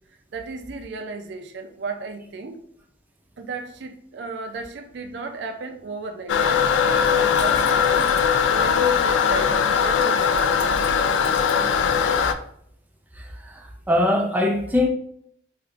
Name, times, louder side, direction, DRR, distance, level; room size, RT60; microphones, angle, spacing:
voice 1, 0.3-2.6 3.4-6.7 7.2-8.2 8.5-10.9, right 4 dB, 65° right, 5 dB, 0.4 m, -34 dB
Toilet flush, 6.3-12.3, left 7 dB, 80° left, 0.3 m, -20 dB
voice 2, 13.2-14.9, left 1 dB, 10° right, 1 dB, 0.5 m, -22 dB
4.4 x 2.5 x 2.4 m, 0.66 s
head